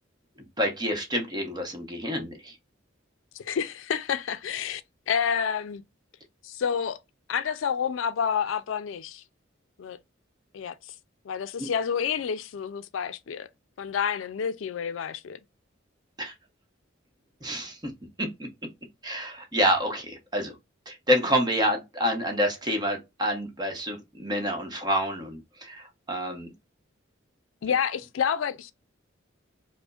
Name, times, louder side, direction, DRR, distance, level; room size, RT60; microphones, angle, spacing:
voice 1, 0.6-2.5 16.2-16.3 17.4-17.9 18.2-18.5 19.0-20.5 20.9-26.5, equal, 20° right, 0.9 m, -28 dB
voice 2, 3.3-4.8 5.1-5.8 6.4-7.0 7.3-9.2 9.8-10.0 10.5-10.9 11.2-13.5 13.8-15.4 27.6-28.7, left 7 dB, 80° left, 0.4 m, -29 dB
4.9 x 2.1 x 2.4 m
head